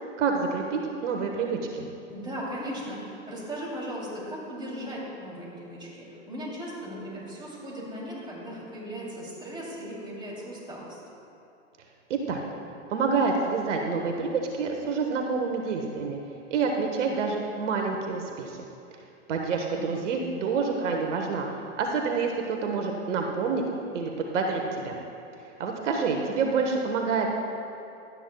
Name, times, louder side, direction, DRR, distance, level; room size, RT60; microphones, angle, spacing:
voice 1, 0.2-1.9 12.1-12.4 12.9-16.2 16.5-18.6 19.3-23.6 23.9-24.9 25.6-27.3, right 4 dB, 70° right, 2 dB, 1.3 m, -28 dB
voice 2, 2.1-11.0 19.7-20.5, equal, 10° right, -4 dB, 2.9 m, -37 dB
17.5 x 12.0 x 2.3 m, 2.8 s
hypercardioid pair, 120°, 38 cm